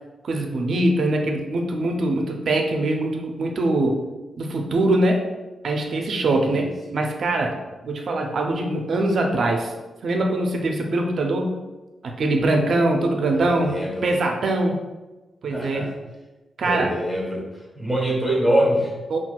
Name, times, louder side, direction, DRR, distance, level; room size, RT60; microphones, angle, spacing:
voice 1, 0.2-4.0 4.4-5.2 5.6-7.6 7.8-9.7 10.0-11.5 12.0-13.8 14.0-14.8 15.4-15.9 16.6-16.9 19.1-19.2, right 2 dB, 55° right, 2 dB, 0.4 m, -22 dB
voice 2, 13.4-14.0 15.5-15.9 16.6-17.4 17.8-18.9, right 1 dB, 10° left, -4 dB, 1.1 m, -23 dB
5.7 x 2.3 x 2.2 m, 1.2 s
wide cardioid pair, 160°, 0 cm